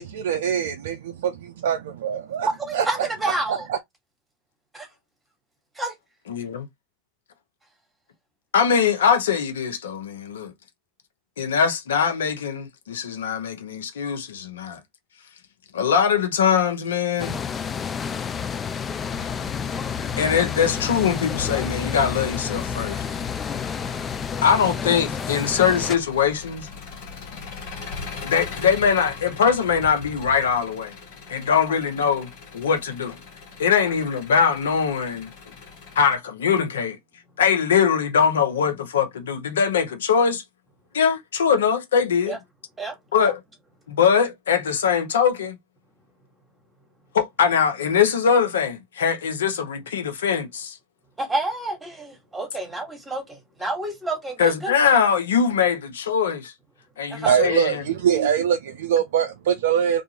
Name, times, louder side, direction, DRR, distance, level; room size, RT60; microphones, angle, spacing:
voice 1, 0.0-2.5 2.7-2.9 3.5-3.8 57.3-60.0, right 8 dB, 75° right, 0.4 m, -23 dB
voice 2, 2.6-3.7 4.7-4.9 5.7-5.9 31.7-31.8 33.8-33.9 42.3-42.4 42.8-43.3 51.2-54.7 57.1-57.4, right 2 dB, 10° right, 1.3 m, -29 dB
voice 3, 6.3-6.7 8.5-10.5 11.4-14.8 15.7-17.4 20.2-23.0 24.4-26.7 28.2-30.9 31.3-33.2 33.6-35.3 36.0-37.0 37.4-40.4 40.9-42.4 43.1-43.4 43.9-45.6 47.1-50.8 54.4-56.5 57.0-57.9, left 7 dB, 80° left, 0.6 m, -22 dB
sound 1, 17.2-26.0, left 7 dB, 25° left, 0.3 m, -30 dB
Engine, 19.0-36.2, left 5 dB, 65° left, 1.3 m, -40 dB
2.5 x 2.4 x 2.8 m
hypercardioid pair, 100°, 0 cm